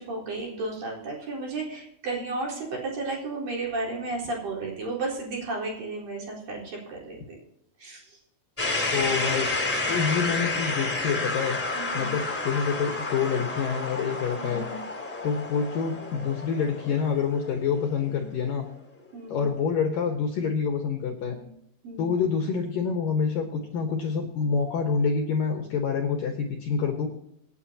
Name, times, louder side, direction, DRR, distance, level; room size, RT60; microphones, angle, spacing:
voice 1, 0.0-7.2 7.8-8.2 8.7-8.9 11.8-12.1 14.4-14.8 19.1-19.4 21.2-21.5 21.8-22.1, right 3 dB, 50° right, -3 dB, 5.6 m, -34 dB
sound 1, 8.6-18.4, left 2 dB, 5° left, 2.2 m, -30 dB
voice 2, 8.9-11.6 11.9-14.7 15.2-18.7 19.3-21.4 22.0-27.1, left 6 dB, 65° left, 3 dB, 2.3 m, -27 dB
27.0 x 9.5 x 2.9 m, 0.77 s
omnidirectional pair, 5.4 m